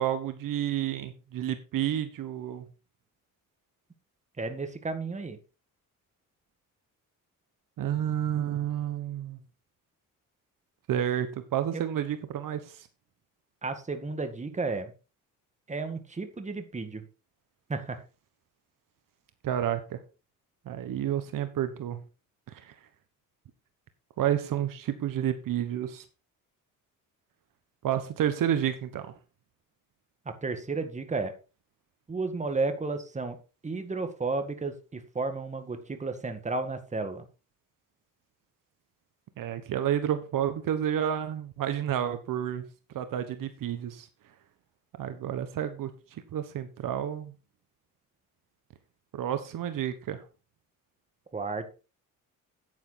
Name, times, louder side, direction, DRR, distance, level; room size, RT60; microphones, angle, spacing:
voice 1, 0.0-2.6 7.8-9.4 10.9-12.9 19.4-20.0 20.6-22.0 22.5-22.7 24.2-26.0 27.8-29.1 39.4-42.6 42.9-44.1 45.0-47.3 49.1-50.2, right 10 dB, 75° right, 10 dB, 1.4 m, -30 dB
voice 2, 4.4-5.4 11.7-11.8 13.6-14.9 15.7-17.0 17.7-18.0 30.2-31.3 32.1-33.4 33.6-37.2 51.3-51.7, right 3 dB, 20° right, 7 dB, 1.8 m, -33 dB
9.5 x 9.5 x 4.0 m, 0.32 s
cardioid pair, 120°, 33 cm